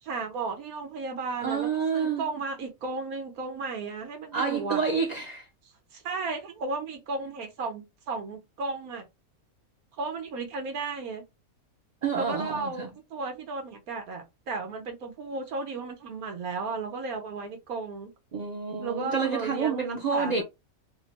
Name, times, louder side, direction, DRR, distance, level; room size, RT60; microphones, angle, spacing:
voice 1, 0.0-4.8 5.9-9.0 10.0-11.3 12.1-18.1 18.8-20.4, right 4 dB, 90° right, 1.4 m, -34 dB
voice 2, 1.4-2.2 4.3-5.5 12.0-12.9 18.3-20.4, right 5 dB, 50° right, 0.5 m, -28 dB
3.4 x 2.1 x 4.0 m
omnidirectional pair, 1.5 m